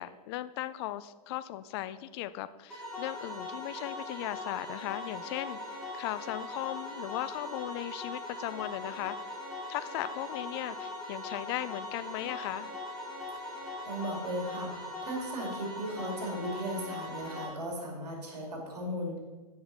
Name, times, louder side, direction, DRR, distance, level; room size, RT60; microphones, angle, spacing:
voice 1, 0.0-9.4 9.7-12.7, left 14 dB, 40° left, 15 dB, 0.4 m, -37 dB
sound 1, 2.7-17.5, left 2 dB, ahead, 2.7 m, -40 dB
voice 2, 13.5-19.2, right 1 dB, 85° right, 0 dB, 2.4 m, -37 dB
7.7 x 5.9 x 4.0 m, 1.3 s
hypercardioid pair, 140°, 20 cm